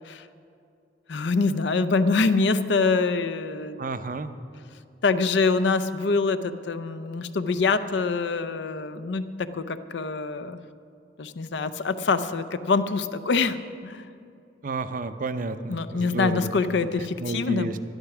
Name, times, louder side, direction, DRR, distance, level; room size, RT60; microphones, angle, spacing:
voice 1, 1.1-3.8 5.0-10.6 11.2-13.6 13.8-14.1 15.7-17.7, left 4 dB, 65° left, 11 dB, 0.6 m, -25 dB
voice 2, 3.8-4.3 14.6-16.5 17.2-17.8, right 3 dB, 45° right, 11 dB, 0.6 m, -30 dB
12.0 x 11.5 x 5.9 m, 2.5 s
head